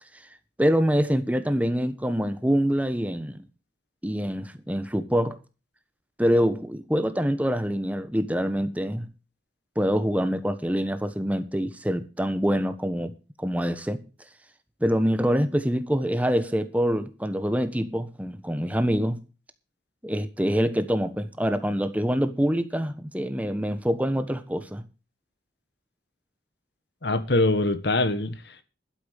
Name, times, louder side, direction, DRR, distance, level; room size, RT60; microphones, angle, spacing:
voice 1, 0.6-3.4 4.0-5.4 6.2-9.1 9.7-14.0 14.8-19.2 20.0-24.8, equal, 10° right, 1.2 m, -25 dB
voice 2, 27.0-28.6, left 2 dB, 65° left, 1.5 m, -24 dB
12.5 x 8.6 x 6.6 m
head